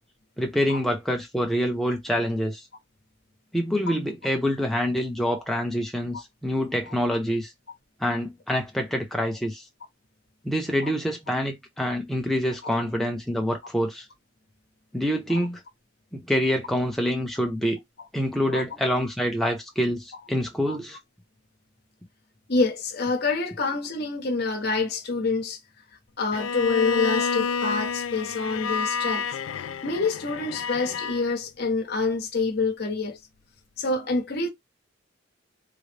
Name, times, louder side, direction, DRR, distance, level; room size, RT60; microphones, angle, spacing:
voice 1, 0.4-2.6 3.5-7.5 8.0-9.6 10.4-14.0 14.9-15.6 16.1-17.8 18.1-21.0, equal, ahead, 0.6 m, -26 dB
voice 2, 22.5-25.6 26.2-29.3 29.8-33.2 33.8-34.5, left 3 dB, 50° left, 0.9 m, -27 dB
Bowed string instrument, 26.3-31.2, left 5 dB, 80° left, 0.4 m, -29 dB
3.8 x 2.0 x 3.3 m
head